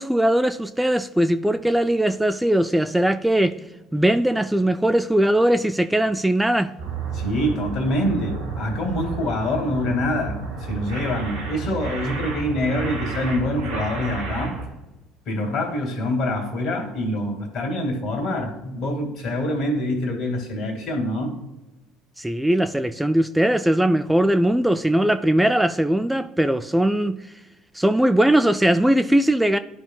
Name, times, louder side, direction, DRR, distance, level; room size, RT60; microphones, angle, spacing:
voice 1, 0.0-3.6 3.9-6.7 22.2-27.3 27.7-29.6, right 1 dB, 5° right, 0.3 m, -20 dB
sound 1, 6.8-14.7, right 4 dB, 75° right, 1.8 m, -31 dB
voice 2, 7.1-14.6 15.3-21.4, left 1 dB, 55° left, 2.0 m, -25 dB
12.5 x 5.3 x 2.3 m
hypercardioid pair, 60°, 0 cm